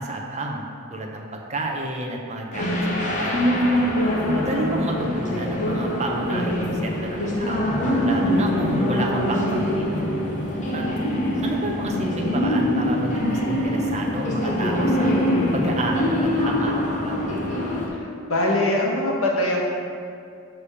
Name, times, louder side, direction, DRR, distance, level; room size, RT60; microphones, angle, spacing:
voice 1, 0.0-3.4 4.3-10.1 10.7-10.8 11.4-15.1 15.5-17.2, right 2 dB, 30° right, 0 dB, 0.7 m, -30 dB
sound 1, 2.5-17.9, left 1 dB, 35° left, 0.8 m, -23 dB
voice 2, 17.9-19.6, left 1 dB, 75° left, -2 dB, 1.1 m, -23 dB
6.8 x 3.4 x 5.5 m, 2.3 s
head